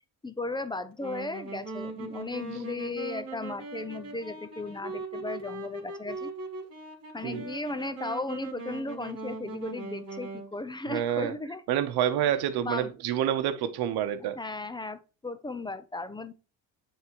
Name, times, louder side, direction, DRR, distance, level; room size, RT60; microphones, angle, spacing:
voice 1, 0.2-6.3 7.1-11.6 12.6-12.9 14.3-16.3, left 2 dB, 10° left, 0.6 m, -36 dB
Wind instrument woodwind instrument, 1.0-10.5, right 3 dB, 40° right, 2.9 m, -40 dB
voice 2, 10.9-11.3 11.7-14.4, right 10 dB, 85° right, 0.9 m, -28 dB
9.3 x 3.6 x 2.9 m
cardioid pair, 100°, 37 cm